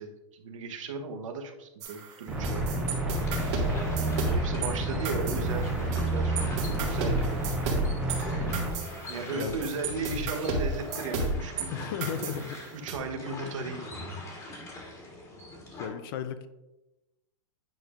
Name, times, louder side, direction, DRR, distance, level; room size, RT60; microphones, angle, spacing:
voice 1, 0.0-2.8 3.2-3.3 4.3-7.8 9.1-11.9 12.2-12.3 12.7-14.1, right 4 dB, 75° right, 4 dB, 1.0 m, -36 dB
sound 1, 1.8-4.7 5.0-6.1 6.4-11.7 12.0-13.0, right 3 dB, 60° right, 1.8 m, -32 dB
sound 2, 2.3-8.7, right 1 dB, 5° right, 1.1 m, -30 dB
sound 3, 3.1-15.9, left 1 dB, 20° left, 1.4 m, -42 dB
voice 2, 9.2-9.7 10.1-10.3 11.7-12.6 15.8-16.5, left 8 dB, 45° left, 11 dB, 0.5 m, -35 dB
9.2 x 5.2 x 2.5 m, 1.0 s
supercardioid pair, 155°, 17 cm